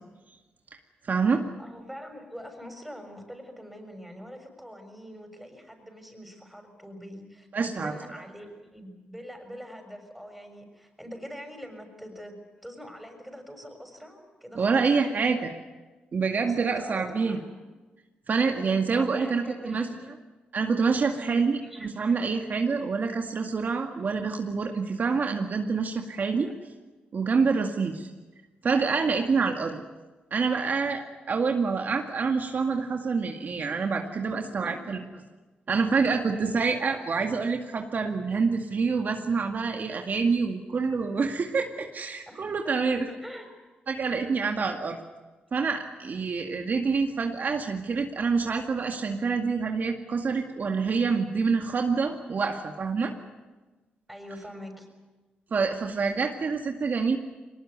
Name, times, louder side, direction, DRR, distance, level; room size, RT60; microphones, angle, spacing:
voice 1, 1.1-1.4 7.5-7.9 14.6-15.5 16.1-17.4 18.3-19.9 20.5-26.5 27.1-28.1 28.6-29.8 30.3-35.0 35.7-43.0 43.9-45.0 45.5-53.1 55.5-57.2, right 5 dB, 55° right, 3 dB, 2.1 m, -27 dB
voice 2, 1.6-12.3 12.6-15.4 16.3-17.4 18.5-20.0 21.1-22.2 26.4-26.5 29.2-29.5 34.3-35.0 42.3-43.5 54.1-54.9, equal, ahead, 5 dB, 6.8 m, -44 dB
21.5 x 19.5 x 9.6 m, 1.2 s
cardioid pair, 60°, 4 cm